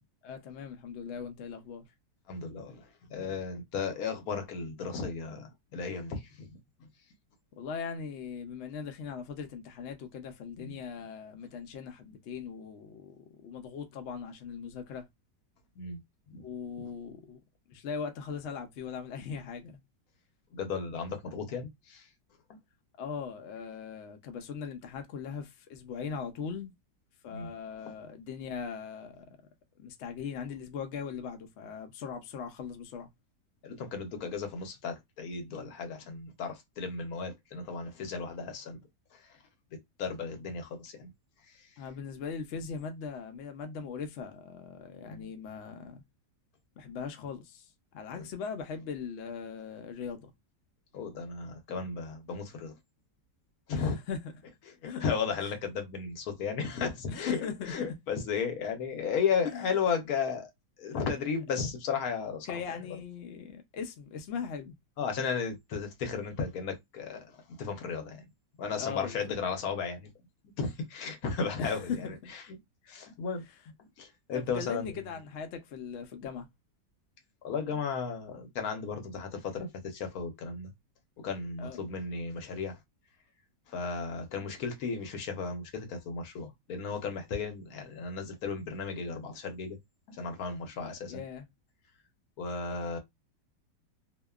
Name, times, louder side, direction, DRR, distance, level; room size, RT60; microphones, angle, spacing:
voice 1, 0.2-1.9 7.6-15.1 16.4-17.4 17.7-19.8 23.0-26.7 27.2-29.3 29.8-33.1 41.8-46.0 46.8-50.3 53.7-54.3 54.8-55.0 57.1-57.7 59.4-59.7 62.4-64.8 68.8-69.3 71.6-72.1 74.3-76.5 81.6-81.8 90.8-91.5, left 6 dB, 85° left, 0.6 m, -39 dB
voice 2, 2.3-6.9 10.6-10.7 15.8-16.0 16.3-16.4 20.5-22.1 27.3-27.5 33.6-38.8 39.1-39.3 40.0-41.1 41.5-41.7 45.1-45.3 48.1-48.3 50.9-52.7 53.7-54.0 54.8-60.5 60.8-62.8 65.0-68.2 68.6-70.1 70.6-72.2 72.9-73.4 73.8-75.0 77.4-80.7 81.2-82.8 83.7-89.8 90.1-91.2 92.4-93.0, left 5 dB, 65° left, 1.1 m, -35 dB
2.7 x 2.1 x 2.3 m
omnidirectional pair, 1.8 m